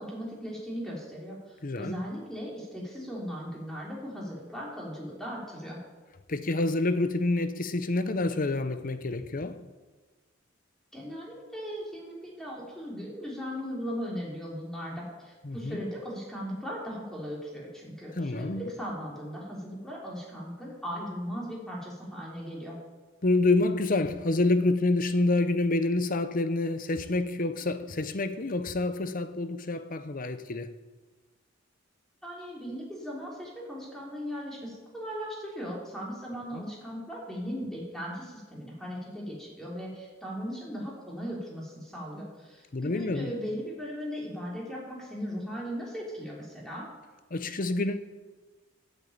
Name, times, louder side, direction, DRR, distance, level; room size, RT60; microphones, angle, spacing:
voice 1, 0.0-5.8 10.9-22.8 32.2-46.9, equal, 5° left, 3.9 m, -38 dB
voice 2, 1.6-2.0 6.3-9.7 15.4-15.8 18.2-18.6 23.2-30.7 36.6-36.7 42.7-43.3 47.3-48.0, left 2 dB, 45° left, 0.8 m, -27 dB
11.5 x 8.3 x 8.9 m
head